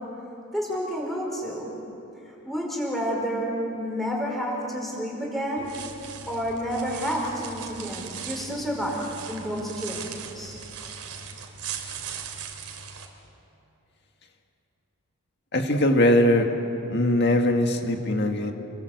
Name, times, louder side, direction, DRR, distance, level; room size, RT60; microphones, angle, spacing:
voice 1, 0.5-1.7 2.3-5.8 6.3-10.6, equal, ahead, -3 dB, 5.0 m, -30 dB
sound 1, 5.6-13.1, right 7 dB, 85° right, 3.1 m, -39 dB
voice 2, 15.5-16.5 16.9-18.5, left 1 dB, 50° left, 4 dB, 1.9 m, -21 dB
29.5 x 22.0 x 8.0 m, 2.8 s
head